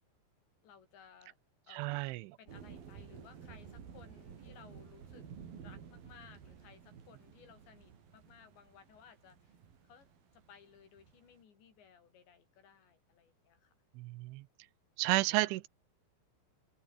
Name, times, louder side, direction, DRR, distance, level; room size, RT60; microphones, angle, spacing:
voice 1, 0.6-1.4 1.7-2.1 2.4-5.3 5.6-9.6 9.8-13.8, left 7 dB, 65° left, 6.4 m, -60 dB
voice 2, 1.7-2.3 14.0-14.5 15.0-15.7, right 20 dB, 85° right, 3.1 m, -32 dB
sound 1, 2.5-11.4, right 7 dB, 50° right, 4.8 m, -53 dB
omnidirectional pair, 5.7 m